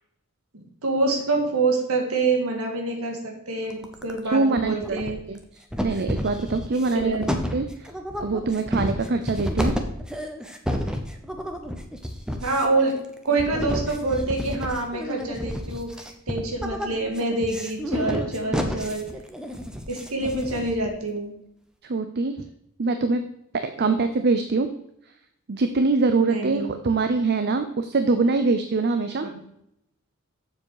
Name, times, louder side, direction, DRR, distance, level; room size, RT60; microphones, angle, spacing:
voice 1, 0.5-5.2 6.9-7.3 12.4-13.0 13.2-16.0 16.3-19.1 19.9-21.3 23.8-24.0 26.2-26.7 29.2-29.3, right 3 dB, 75° right, 1 dB, 1.9 m, -26 dB
sound 1, 3.7-4.3 4.6-5.4 5.7-20.9, equal, 5° right, 0.8 m, -30 dB
voice 2, 4.3-5.0 5.3-5.4 5.8-7.1 7.5-7.9 8.2-9.7 21.8-22.3 22.8-23.2 23.6-24.7 25.5-29.3, right 3 dB, 50° right, 8 dB, 0.6 m, -23 dB
7.3 x 7.1 x 4.8 m, 0.79 s
head